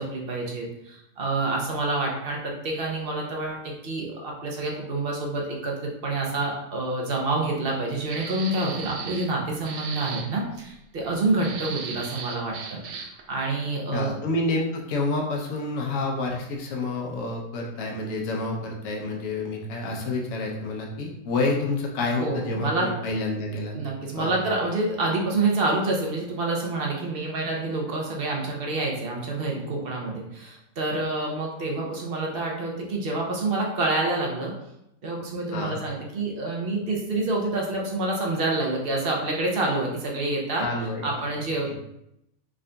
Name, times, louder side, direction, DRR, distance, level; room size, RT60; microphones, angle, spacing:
voice 1, 0.0-14.1 22.2-22.9 23.7-34.5 35.0-40.6 41.0-41.7, right 2 dB, 50° right, -1 dB, 0.7 m, -27 dB
sound 1, 8.1-9.3 9.6-10.3 11.4-13.2, right 6 dB, 75° right, 1.0 m, -36 dB
voice 2, 13.9-23.8 24.2-24.4 35.5-35.8 40.6-41.1 41.7-41.8, left 2 dB, 70° left, -1 dB, 1.1 m, -28 dB
3.8 x 3.7 x 2.2 m, 0.81 s
omnidirectional pair, 1.6 m